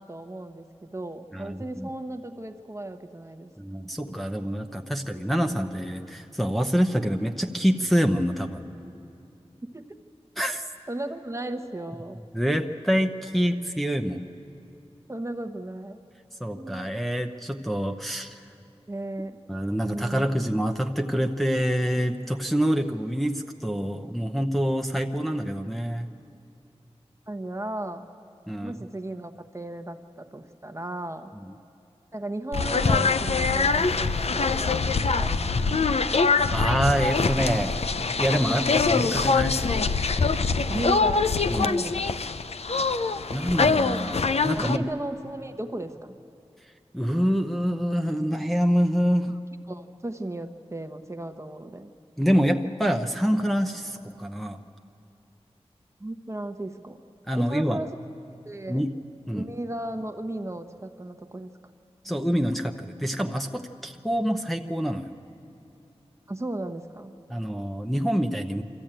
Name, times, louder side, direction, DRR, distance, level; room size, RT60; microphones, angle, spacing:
voice 1, 0.0-3.5 4.9-5.0 5.4-5.7 9.7-9.9 10.9-12.2 15.1-16.0 16.5-16.9 18.9-19.4 19.8-20.3 27.3-28.1 28.6-31.3 32.1-35.8 40.7-41.3 41.6-42.2 44.6-46.2 49.7-51.9 56.0-57.0 57.4-58.0 58.4-58.8 59.3-61.5 66.3-67.2, right 1 dB, 25° right, 7 dB, 1.0 m, -35 dB
voice 2, 1.3-1.9 3.6-8.6 10.4-10.6 12.3-14.3 16.4-18.4 19.5-26.1 28.5-28.7 36.1-36.2 36.5-37.8 38.2-39.6 41.5-41.7 43.3-44.8 46.9-49.3 52.2-54.6 57.3-57.8 58.7-58.9 59.3-59.5 62.0-65.1 67.3-68.6, equal, ahead, 3 dB, 0.8 m, -26 dB
sound 1, 32.5-44.8, left 4 dB, 70° left, 0.6 m, -24 dB
24.5 x 14.0 x 8.9 m, 2.7 s
wide cardioid pair, 70°, 11 cm